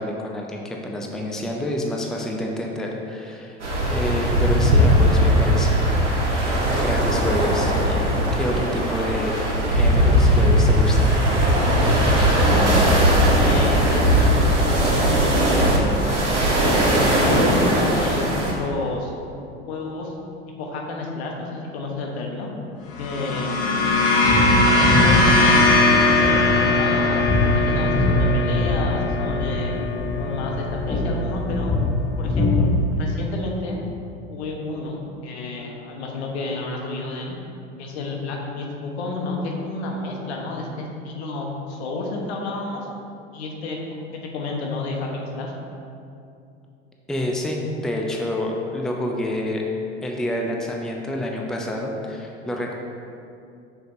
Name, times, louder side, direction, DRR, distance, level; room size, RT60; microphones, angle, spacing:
voice 1, 0.0-6.0 6.6-9.4 9.7-11.2 47.1-49.6 50.0-52.7, left 1 dB, ahead, 0 dB, 0.6 m, -28 dB
sound 1, 3.6-18.5, equal, 90° right, 1.2 m, -19 dB
voice 2, 12.4-12.8 13.3-16.2 16.8-19.1 19.7-20.1 20.6-22.5 23.0-23.5 24.6-27.2 27.5-29.7 30.2-31.7 32.2-33.8 34.3-37.4 37.8-42.9 43.3-45.5, left 3 dB, 65° left, 0 dB, 1.2 m, -30 dB
sound 2, 22.9-31.4, left 2 dB, 45° left, 1.0 m, -20 dB
sound 3, 24.3-32.9, left 1 dB, 15° left, 1.1 m, -23 dB
6.5 x 6.1 x 2.7 m, 2.6 s
figure-of-eight pair, 80°, 35 cm